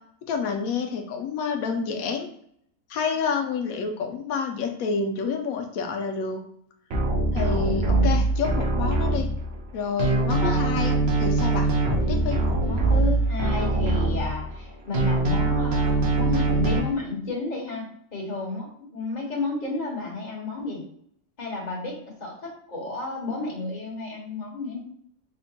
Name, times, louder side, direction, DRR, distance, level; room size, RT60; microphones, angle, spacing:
voice 1, 0.3-2.3 2.9-6.4 7.3-9.3 9.7-11.7 12.1-12.4, left 5 dB, 90° left, 4 dB, 1.1 m, -28 dB
sound 1, 6.9-9.7 10.0-14.7 14.9-16.8, right 2 dB, 55° right, 0.9 m, -23 dB
voice 2, 7.6-8.2 10.4-10.7 12.7-17.9 18.1-20.8 21.4-24.8, left 3 dB, 35° left, -2 dB, 1.2 m, -32 dB
3.5 x 2.1 x 4.1 m, 0.65 s
omnidirectional pair, 1.4 m